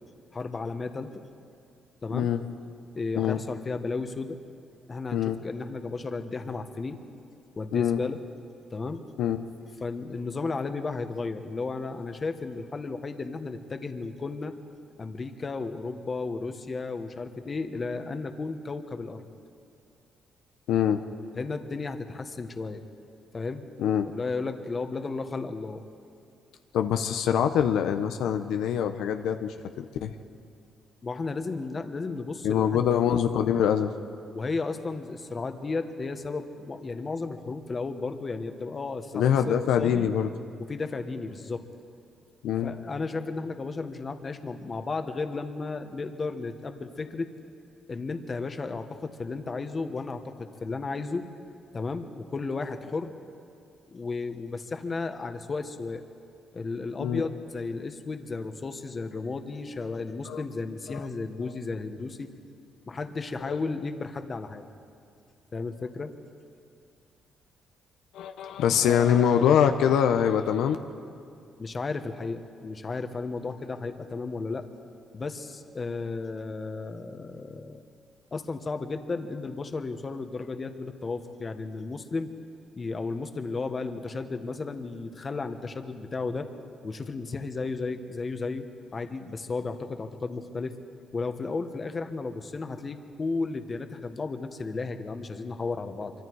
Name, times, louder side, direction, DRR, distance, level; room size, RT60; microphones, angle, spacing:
voice 1, 0.3-1.2 2.0-2.3 2.9-4.4 4.9-7.0 7.6-8.2 8.7-9.0 9.8-14.5 15.0-19.2 21.4-22.8 23.3-23.7 24.0-25.8 31.0-32.8 34.3-40.1 40.7-41.6 42.6-47.3 47.9-51.3 51.7-53.1 53.9-56.0 56.5-62.3 62.9-64.7 65.5-66.1 68.9-69.5 71.6-74.7 75.1-77.8 78.3-82.3 82.8-86.5 86.8-88.6 88.9-90.7 91.1-96.1, left 3 dB, 35° left, 8 dB, 1.4 m, -34 dB
voice 2, 20.7-21.0 23.8-24.1 26.7-30.1 32.4-33.9 39.1-40.3 42.4-42.7 57.0-57.2 60.3-60.4 60.9-61.1 63.4-63.6 68.1-70.8, left 9 dB, 85° left, 7 dB, 0.8 m, -24 dB
25.0 x 24.0 x 4.8 m, 2.5 s
cardioid pair, 90°, 0 cm